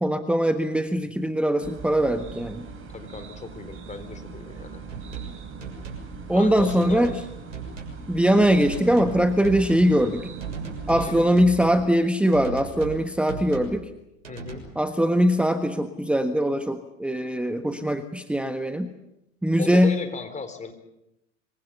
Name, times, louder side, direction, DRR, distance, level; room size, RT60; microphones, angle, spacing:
voice 1, 0.0-2.7 6.3-7.1 8.1-10.3 10.9-13.9 14.7-18.9 19.4-20.0, equal, 5° right, 8 dB, 1.4 m, -21 dB
sound 1, 1.6-11.3, right 5 dB, 35° right, 5.6 m, -40 dB
voice 2, 2.9-4.8 6.3-7.2 10.9-11.1 14.3-14.7 19.6-20.7, left 4 dB, 20° left, 9 dB, 4.3 m, -36 dB
sound 2, 4.9-5.3 5.6-6.1 6.6-7.2 7.5-8.0 8.5-9.2 9.4-9.9 10.4-11.8 12.3-13.0 13.3-13.8 14.2-14.6, right 6 dB, 85° right, 6.8 m, -37 dB
26.0 x 24.0 x 7.0 m, 0.87 s
figure-of-eight pair, 85°, 38 cm